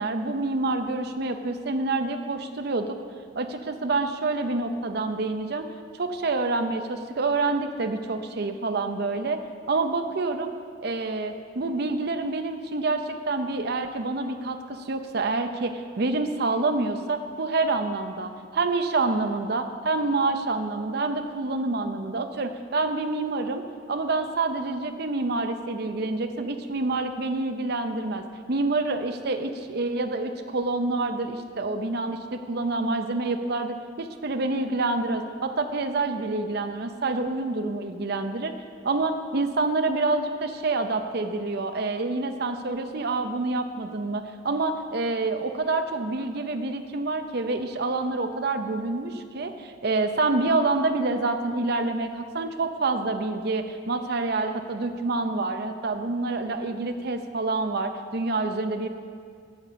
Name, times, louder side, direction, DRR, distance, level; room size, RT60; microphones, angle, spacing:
voice 1, 0.0-3.0 3.4-5.6 5.9-9.4 9.7-10.5 10.8-38.5 38.8-58.9, right 3 dB, 60° right, 7 dB, 0.7 m, -27 dB
10.5 x 6.8 x 7.3 m, 2.1 s
head